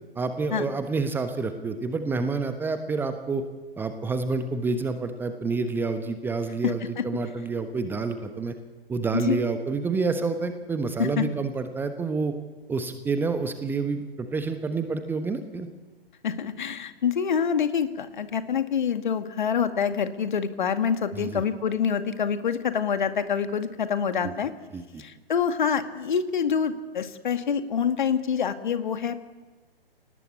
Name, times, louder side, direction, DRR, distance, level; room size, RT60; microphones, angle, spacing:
voice 1, 0.1-3.4 3.8-8.5 8.9-12.3 12.7-15.7 21.1-21.4 24.2-24.3 24.7-25.0, right 4 dB, 5° right, 8 dB, 1.2 m, -28 dB
voice 2, 6.6-7.0 9.1-9.4 11.0-11.3 16.2-24.5 25.0-29.3, left 7 dB, 50° left, 9 dB, 2.2 m, -26 dB
29.0 x 18.5 x 8.6 m, 1.3 s
figure-of-eight pair, 125°, 30 cm